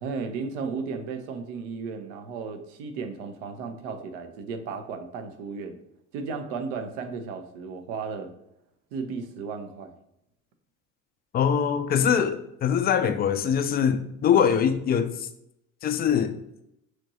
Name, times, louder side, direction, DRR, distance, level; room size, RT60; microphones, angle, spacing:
voice 1, 0.0-5.8 6.1-8.3 8.9-9.9, right 5 dB, 60° right, 7 dB, 0.7 m, -34 dB
voice 2, 11.3-15.3 15.8-16.4, left 8 dB, 25° left, 9 dB, 0.4 m, -23 dB
5.9 x 3.0 x 2.7 m, 0.80 s
figure-of-eight pair, 55°, 40 cm